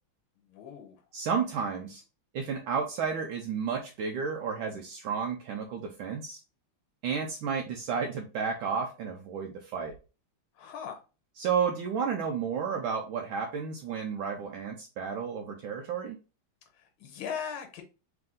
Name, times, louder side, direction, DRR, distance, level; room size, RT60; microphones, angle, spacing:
voice 1, 0.5-1.0 10.5-11.0 16.7-17.8, left 7 dB, 75° left, 5 dB, 1.7 m, -39 dB
voice 2, 1.1-2.0 2.3-6.4 7.0-9.9 11.4-16.2, right 6 dB, 75° right, 2 dB, 1.3 m, -32 dB
3.5 x 3.3 x 3.6 m, 0.32 s
omnidirectional pair, 2.4 m